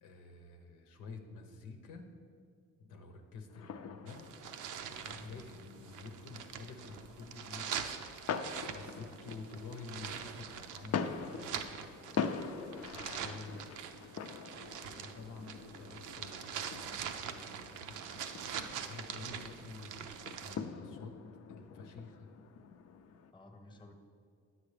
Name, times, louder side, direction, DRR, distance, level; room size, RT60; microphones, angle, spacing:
voice 1, 0.0-2.1 2.8-4.2 5.0-7.8 8.7-11.6 13.1-14.1 14.8-18.0 18.8-20.1 20.4-21.2 21.5-22.3 23.7-23.8, left 4 dB, 85° left, 4 dB, 0.9 m, -50 dB
sound 1, 3.5-23.3, left 6 dB, 55° left, 0.5 m, -44 dB
sound 2, 4.1-20.6, right 8 dB, 80° right, 0.6 m, -44 dB
voice 2, 5.1-5.5 8.9-9.0 13.1-13.4 23.3-24.0, left 1 dB, 15° left, 4 dB, 0.9 m, -54 dB
9.6 x 7.7 x 3.3 m, 2.3 s
cardioid pair, 90°, 30 cm